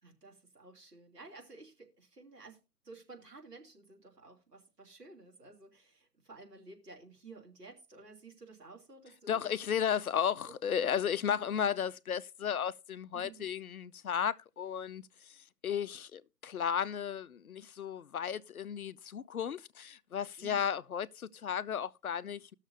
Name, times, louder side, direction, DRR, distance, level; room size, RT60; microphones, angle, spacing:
voice 1, 0.0-2.6 2.8-9.5 10.5-10.9 11.2-11.4 13.1-13.5 20.4-20.6, right 3 dB, 75° right, 2.9 m, -53 dB
voice 2, 9.3-22.5, left 8 dB, 60° left, 0.5 m, -34 dB
19.5 x 6.5 x 2.6 m
figure-of-eight pair, 145°, 49 cm